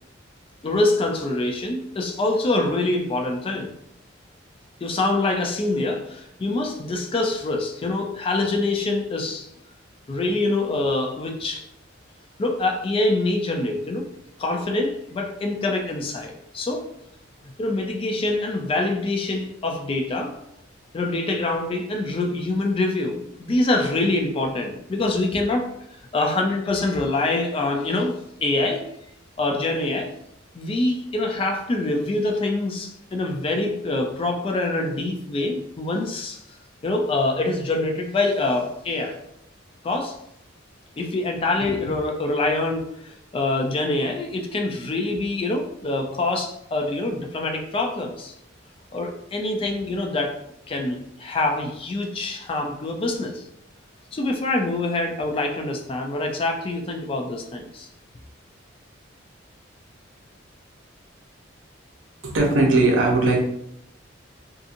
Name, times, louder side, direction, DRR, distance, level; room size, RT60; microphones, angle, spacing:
voice 1, 0.6-3.7 4.8-9.5 10.1-11.6 12.4-14.1 14.4-16.9 17.4-20.4 20.9-25.7 26.1-28.9 29.4-30.1 30.5-36.4 36.8-39.2 39.8-40.2 41.0-48.3 48.9-50.4 50.7-53.5 54.1-57.9, left 2 dB, 30° left, 3 dB, 0.3 m, -25 dB
voice 2, 62.2-63.4, right 2 dB, 75° right, 0 dB, 0.7 m, -18 dB
2.7 x 2.6 x 2.4 m, 0.76 s
head